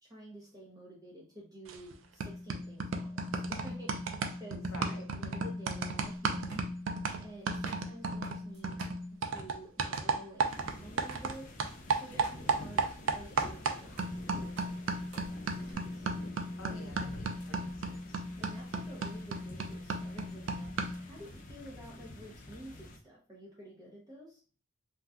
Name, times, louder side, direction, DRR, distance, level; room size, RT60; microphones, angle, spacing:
voice 1, 0.0-3.9 4.4-6.6 7.2-8.8 9.1-11.5 11.9-14.0 14.3-14.9 15.1-16.1 16.7-17.0 18.4-20.7 21.0-24.4, right 1 dB, 20° right, -4 dB, 0.6 m, -50 dB
sound 1, 1.7-1.9 2.2-11.3 11.6-21.1, right 3 dB, 70° right, 0.4 m, -35 dB
voice 2, 4.7-5.0 12.1-12.3 16.6-18.2, left 2 dB, 75° left, 4 dB, 0.7 m, -50 dB
sound 2, 6.0-15.7, right 2 dB, 55° right, 1.1 m, -54 dB
sound 3, 10.5-23.0, left 1 dB, 40° left, 0.4 m, -48 dB
2.6 x 2.2 x 3.4 m, 0.38 s
head